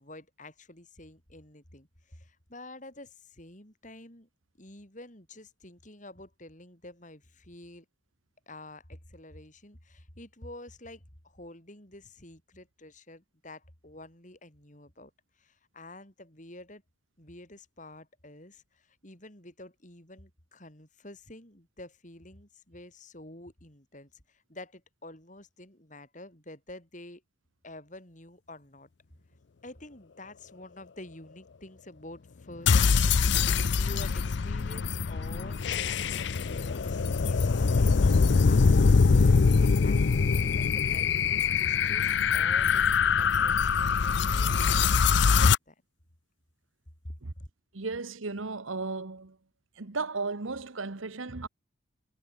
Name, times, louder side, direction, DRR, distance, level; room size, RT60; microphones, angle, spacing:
voice 1, 0.0-4.3 4.6-7.9 8.5-15.1 15.4-16.8 17.2-27.2 27.6-28.9 29.6-37.0 37.3-38.1 38.4-42.8 43.1-45.4 45.7-45.8 47.0-47.5, left 1 dB, 40° left, 5.3 m, -49 dB
sound 1, 32.7-45.6, left 5 dB, 65° left, 0.5 m, -23 dB
voice 2, 47.7-49.4 49.8-51.5, right 3 dB, 90° right, 1.3 m, -35 dB
head